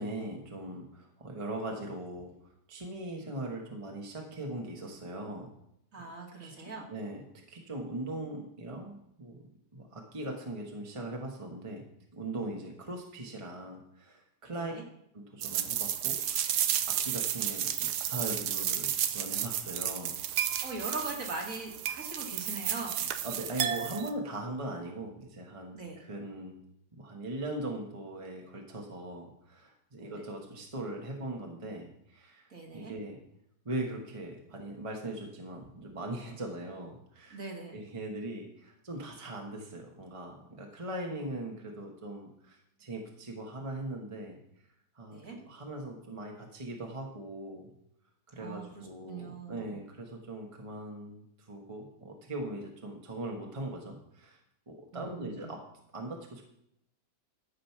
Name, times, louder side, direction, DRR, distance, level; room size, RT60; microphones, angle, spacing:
voice 1, 0.0-2.3 2.7-5.5 6.4-7.2 7.5-9.4 9.7-11.9 12.1-14.7 15.1-16.6 16.9-20.7 23.2-26.6 26.9-32.5 32.7-33.2 33.6-37.4 37.7-44.4 44.9-47.7 48.3-54.4 54.7-55.6 55.9-56.4, right 1 dB, 20° right, 1 dB, 1.2 m, -40 dB
voice 2, 5.9-6.8 14.5-14.8 20.6-23.1 25.7-26.0 30.0-30.2 32.5-32.9 37.3-37.8 45.1-45.4 48.4-49.8 54.9-55.5, right 3 dB, 50° right, 0 dB, 2.4 m, -41 dB
sound 1, 15.4-24.1, right 10 dB, 75° right, 1.2 m, -32 dB
13.5 x 5.1 x 5.9 m, 0.76 s
omnidirectional pair, 1.9 m